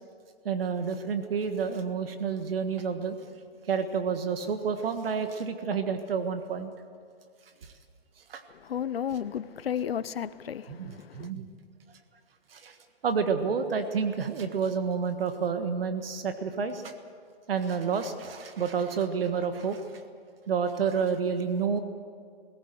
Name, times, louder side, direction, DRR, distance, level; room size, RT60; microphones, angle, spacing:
voice 1, 0.4-3.2 3.7-6.7 7.6-7.7 8.3-8.4 10.7-11.5 12.5-12.8 13.0-16.9 17.5-19.8 20.5-21.8, right 6 dB, 70° right, 1.6 m, -29 dB
voice 2, 8.5-11.3, left 9 dB, 80° left, 0.8 m, -33 dB
19.5 x 17.0 x 7.8 m
hypercardioid pair, 120°, 30 cm